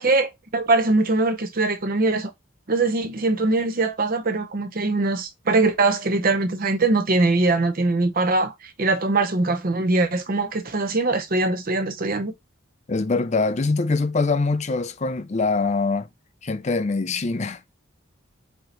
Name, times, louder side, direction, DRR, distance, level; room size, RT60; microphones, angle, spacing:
voice 1, 0.0-2.3 2.7-8.5 8.8-12.3, right 3 dB, 45° right, 0.7 m, -22 dB
voice 2, 12.9-16.1 16.4-17.6, left 3 dB, 35° left, 0.4 m, -23 dB
4.8 x 2.8 x 3.9 m
head